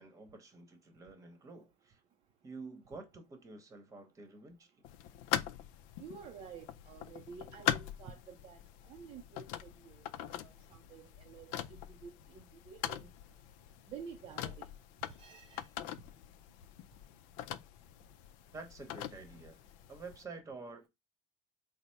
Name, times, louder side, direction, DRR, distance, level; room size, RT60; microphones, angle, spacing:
voice 1, 0.0-2.0 2.4-4.7 18.5-19.6 19.9-20.9, right 3 dB, 20° right, 1.0 m, -49 dB
sound 1, 4.8-20.2, left 11 dB, 70° left, 0.4 m, -42 dB
voice 2, 6.0-8.6 8.8-13.1 13.9-14.7 15.0-15.7, right 6 dB, 40° right, 0.5 m, -51 dB
4.0 x 2.0 x 4.4 m
cardioid pair, 135°, 14 cm